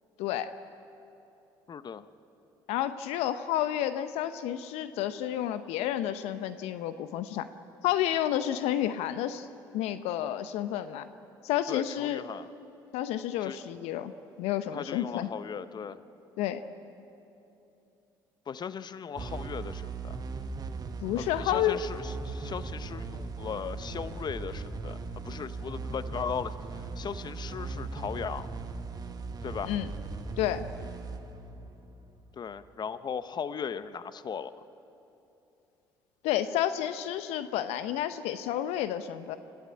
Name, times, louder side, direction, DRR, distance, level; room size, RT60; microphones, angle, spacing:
voice 1, 0.2-0.5 2.7-7.5 7.8-9.5 9.7-11.1 11.4-12.2 12.9-14.1 14.4-15.3 16.4-16.6 21.0-21.8 29.7-29.9 30.4-30.7 36.2-39.4, left 11 dB, 70° left, 12 dB, 0.7 m, -30 dB
voice 2, 1.7-2.1 11.7-12.5 13.4-13.6 14.7-16.0 18.5-20.2 21.2-25.0 25.2-28.5 29.4-29.7 32.3-34.5, left 7 dB, 40° left, 14 dB, 0.8 m, -37 dB
sound 1, 19.2-32.5, right 4 dB, 35° right, 1.5 m, -39 dB
26.0 x 14.5 x 8.6 m, 2.9 s
hypercardioid pair, 55°, 11 cm